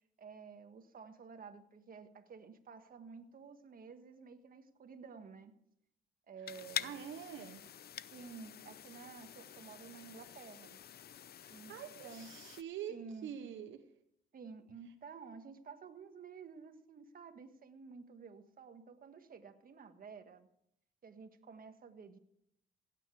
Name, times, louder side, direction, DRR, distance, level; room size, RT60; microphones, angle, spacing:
voice 1, 0.2-5.5 6.3-7.0 8.1-10.8 11.5-11.8 12.0-12.3 12.9-13.3 14.3-20.5 21.0-22.2, right 5 dB, 45° right, 8 dB, 1.5 m, -52 dB
sound 1, 6.5-12.6, left 10 dB, 55° left, 0.6 m, -47 dB
voice 2, 6.8-7.6 11.4-12.9 13.2-13.9, right 9 dB, 75° right, 8 dB, 1.0 m, -45 dB
16.5 x 9.2 x 4.8 m, 0.73 s
cardioid pair, 90°, 20 cm